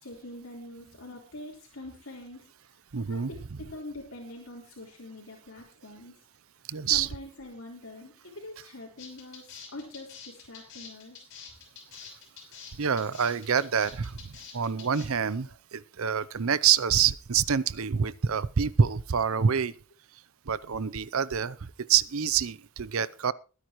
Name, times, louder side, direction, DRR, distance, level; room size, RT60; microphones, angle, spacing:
voice 1, 0.0-2.4 3.1-6.1 6.9-11.2, left 1 dB, 75° left, 4.0 m, -44 dB
voice 2, 2.9-3.3 6.7-7.1 12.8-19.7 20.5-23.3, right 7 dB, 75° right, 0.6 m, -26 dB
sound 1, 9.0-15.1, left 6 dB, 55° left, 6.1 m, -46 dB
21.5 x 9.6 x 3.1 m
head